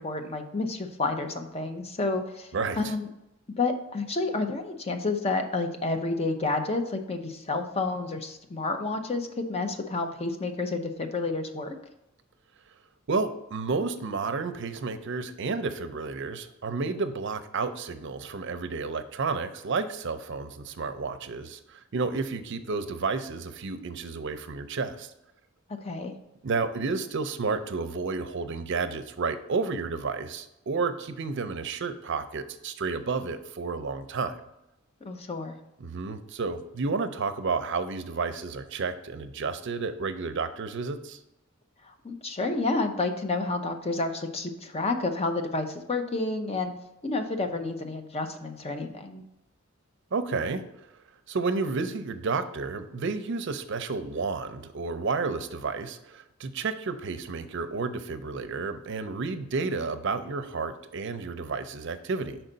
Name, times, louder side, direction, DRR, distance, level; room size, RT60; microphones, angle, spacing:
voice 1, 0.0-2.5 2.8-3.1 3.6-11.8 25.8-26.1 35.0-35.5 41.8-46.7 47.0-49.2, left 3 dB, 30° left, 6 dB, 0.6 m, -30 dB
voice 2, 2.5-2.9 13.1-25.1 26.4-34.3 35.8-41.2 50.1-50.6 51.3-62.4, right 4 dB, 60° right, 9 dB, 0.5 m, -31 dB
5.4 x 4.5 x 3.9 m, 0.90 s
head